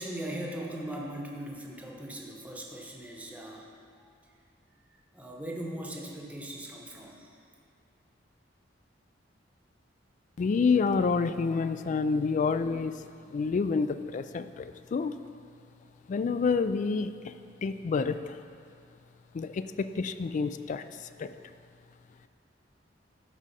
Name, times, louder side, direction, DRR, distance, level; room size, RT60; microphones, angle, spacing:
voice 1, 0.0-3.7 4.0-4.2 4.9-7.4, right 1 dB, 10° right, -1 dB, 0.9 m, -39 dB
voice 2, 10.4-15.2 16.1-17.3 17.6-18.4 19.3-21.3, left 4 dB, 40° left, 12 dB, 0.3 m, -28 dB
12.5 x 4.8 x 4.2 m, 2.4 s
head